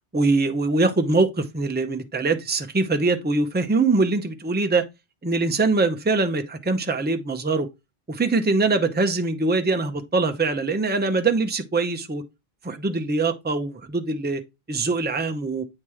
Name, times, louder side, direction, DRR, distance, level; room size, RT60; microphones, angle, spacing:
voice 1, 0.1-4.8 5.2-7.7 8.1-12.2 12.6-14.4 14.7-15.6, right 3 dB, 10° right, 0.6 m, -23 dB
8.6 x 3.0 x 4.8 m
omnidirectional pair, 1.0 m